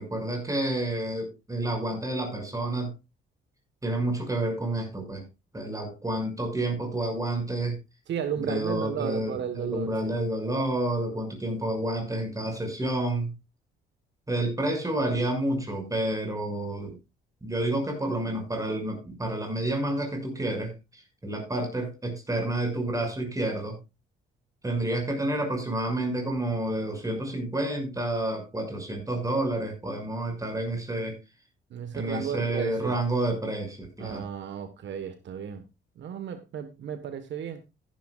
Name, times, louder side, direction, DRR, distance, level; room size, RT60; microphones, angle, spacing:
voice 1, 0.0-2.9 3.8-5.2 5.5-7.8 8.4-13.3 14.3-17.0 17.4-23.8 24.6-31.1 31.9-34.3, right 1 dB, 15° right, 6.2 m, -29 dB
voice 2, 8.1-10.1 31.7-33.0 34.0-35.6 36.0-37.6, right 8 dB, 70° right, 1.3 m, -34 dB
15.0 x 11.0 x 2.4 m
cardioid pair, 90°, 20 cm